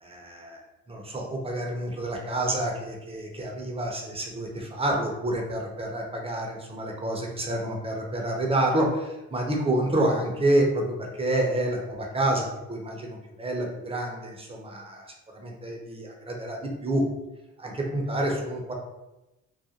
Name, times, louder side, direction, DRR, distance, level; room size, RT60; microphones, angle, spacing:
voice 1, 0.0-0.6 0.9-15.1 15.3-17.0 17.6-18.7, right 1 dB, 20° right, 0 dB, 0.5 m, -28 dB
2.4 x 2.1 x 2.8 m, 0.98 s
cardioid pair, 90°, 30 cm